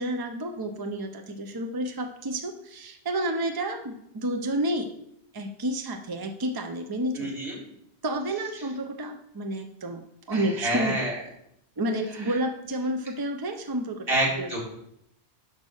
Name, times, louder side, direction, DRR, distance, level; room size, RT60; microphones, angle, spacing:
voice 1, 0.0-4.9 5.3-7.3 8.0-10.0 10.3-11.1 11.8-14.0 14.4-14.5, right 1 dB, 35° right, 5 dB, 0.3 m, -30 dB
voice 2, 7.1-7.6 10.3-11.2 12.3-12.4 14.1-14.6, right 1 dB, 55° right, -3 dB, 2.4 m, -28 dB
5.4 x 5.3 x 6.3 m, 0.77 s
omnidirectional pair, 1.2 m